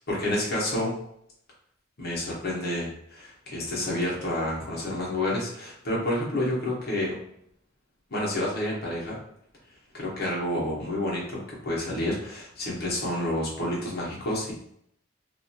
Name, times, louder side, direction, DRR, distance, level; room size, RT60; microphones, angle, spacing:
voice 1, 0.1-0.9 2.0-7.1 8.1-9.2 9.9-14.5, left 1 dB, 50° left, -4 dB, 1.0 m, -29 dB
2.6 x 2.3 x 2.7 m, 0.70 s
head